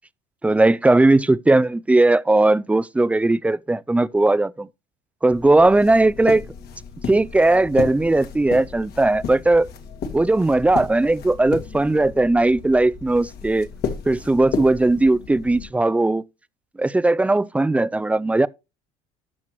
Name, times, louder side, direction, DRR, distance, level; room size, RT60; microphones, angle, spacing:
voice 1, 0.4-4.7 5.2-6.4 7.1-9.7 10.1-13.7 14.1-16.2 16.8-18.5, right 2 dB, 5° right, 0.3 m, -18 dB
sound 1, 5.3-15.7, left 6 dB, 60° left, 1.9 m, -33 dB
12.5 x 5.9 x 3.0 m
supercardioid pair, 95°, 18 cm